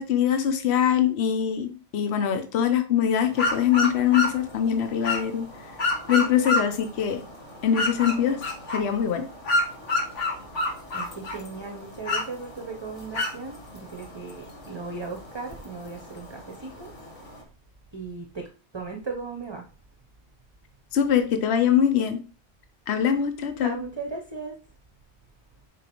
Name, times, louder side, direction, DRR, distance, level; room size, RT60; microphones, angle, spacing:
voice 1, 0.0-5.5 6.1-7.2 7.6-8.4 8.7-9.2 20.9-22.2 22.9-23.8, left 9 dB, 65° left, 8 dB, 1.0 m, -23 dB
sound 1, 3.3-17.4, left 2 dB, 85° left, 1.8 m, -31 dB
voice 2, 10.9-16.9 17.2-17.3 17.9-18.5 18.7-19.7 23.6-24.6, right 4 dB, 25° right, 3 dB, 0.8 m, -37 dB
7.4 x 5.2 x 3.0 m, 0.36 s
omnidirectional pair, 1.2 m